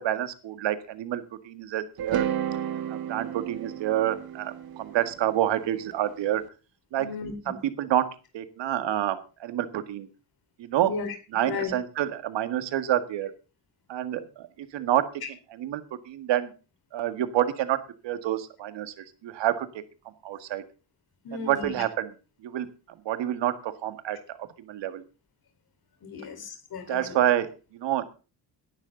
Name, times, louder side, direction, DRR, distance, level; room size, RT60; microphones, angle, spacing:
voice 1, 0.0-2.2 2.9-6.4 6.9-7.1 7.5-8.1 8.3-10.1 10.6-10.9 11.3-13.3 13.9-15.1 15.5-16.5 16.9-19.7 20.2-20.6 21.3-22.1 22.4-22.7 23.1-25.0 26.9-28.1, right 12 dB, 85° right, 10 dB, 1.9 m, -28 dB
sound 1, 2.0-6.2, right 9 dB, 55° right, 1.6 m, -32 dB
voice 2, 7.0-7.3 10.8-11.7 21.2-21.8 26.0-27.2, left 5 dB, 55° left, 5 dB, 4.4 m, -35 dB
17.5 x 11.5 x 3.9 m, 0.34 s
cardioid pair, 125°, 42 cm